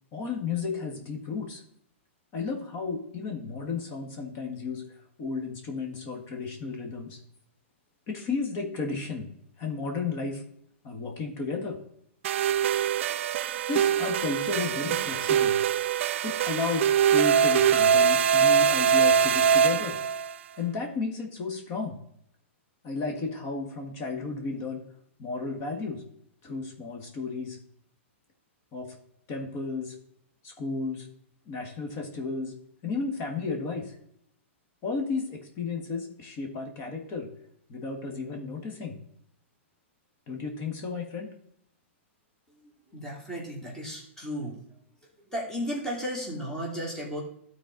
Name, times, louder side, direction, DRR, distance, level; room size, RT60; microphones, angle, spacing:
voice 1, 0.1-1.6 2.3-4.8 5.2-7.2 8.1-9.3 9.6-10.4 10.8-11.8 13.7-15.6 16.2-20.0 20.6-22.0 22.8-24.8 25.2-26.0 26.4-27.6 28.7-28.9 29.3-29.9 30.4-31.1 31.5-32.5 32.8-34.0 34.8-37.3 37.7-39.0 40.3-41.3, left 4 dB, 35° left, 3 dB, 1.6 m, -33 dB
sound 1, 12.2-20.3, right 7 dB, 65° right, 0.4 m, -23 dB
voice 2, 42.9-44.6 45.2-47.2, equal, 5° left, -3 dB, 2.2 m, -34 dB
12.5 x 4.2 x 3.8 m, 0.71 s
hypercardioid pair, 140°, 7 cm